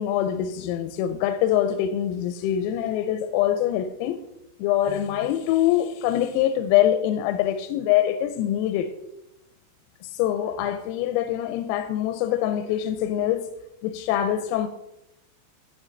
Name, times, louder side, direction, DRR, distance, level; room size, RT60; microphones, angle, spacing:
voice 1, 0.0-4.2 4.6-8.9 10.0-13.5 13.8-14.7, left 11 dB, 90° left, 3.3 m, -24 dB
14.5 x 7.6 x 3.9 m
omnidirectional pair, 6.0 m